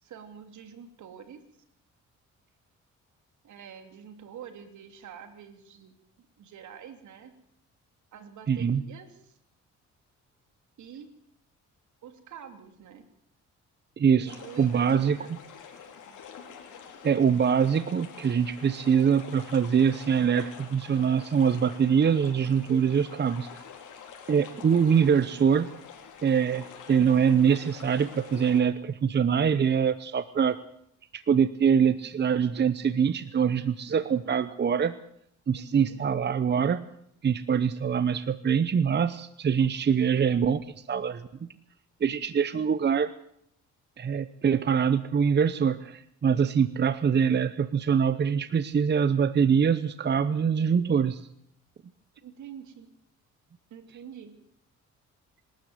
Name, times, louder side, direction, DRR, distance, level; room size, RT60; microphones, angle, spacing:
voice 1, 0.0-1.4 3.4-7.3 8.1-9.4 10.8-11.1 12.0-13.1 14.2-15.3 35.5-36.0 52.2-52.9 53.7-54.4, right 8 dB, 75° right, 8 dB, 3.1 m, -46 dB
voice 2, 8.5-8.8 14.0-15.2 17.0-23.5 24.3-25.7 26.2-30.6 31.1-35.0 35.5-36.8 37.2-40.6 40.9-41.5 42.0-43.1 44.0-51.2, right 7 dB, 35° right, 14 dB, 0.9 m, -24 dB
sound 1, 14.3-28.6, left 7 dB, 80° left, 4.5 m, -47 dB
26.0 x 13.0 x 7.9 m, 0.72 s
cardioid pair, 90°, 30 cm